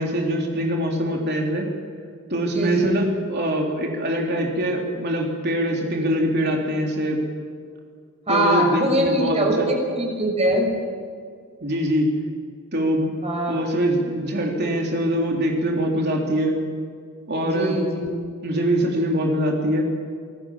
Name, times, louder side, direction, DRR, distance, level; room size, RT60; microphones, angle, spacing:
voice 1, 0.0-1.7 2.3-7.2 8.3-9.7 11.6-12.1 12.7-13.1 13.5-16.6 17.3-17.8 18.4-19.9, right 1 dB, 50° right, 0 dB, 3.6 m, -23 dB
voice 2, 2.5-2.9 8.3-10.7 13.2-13.6 17.4-18.1, equal, 30° right, 1 dB, 6.3 m, -22 dB
27.5 x 20.0 x 7.5 m, 2.2 s
head